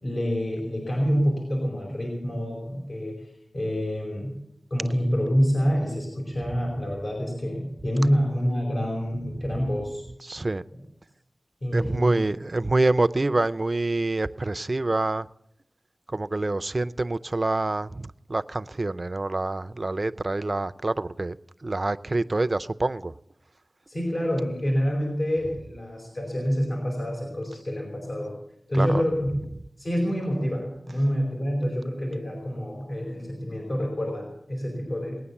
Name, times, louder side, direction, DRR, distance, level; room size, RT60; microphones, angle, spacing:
voice 1, 0.0-4.4 4.7-10.0 11.6-12.2 23.9-28.3 28.7-29.3 29.8-35.2, equal, 65° left, -2 dB, 4.8 m, -27 dB
voice 2, 10.3-10.6 11.7-15.3 16.1-21.4 21.6-23.1 28.7-29.0, right 2 dB, 45° right, 12 dB, 0.5 m, -26 dB
20.0 x 9.4 x 7.1 m, 0.81 s
cardioid pair, 40°, 0 cm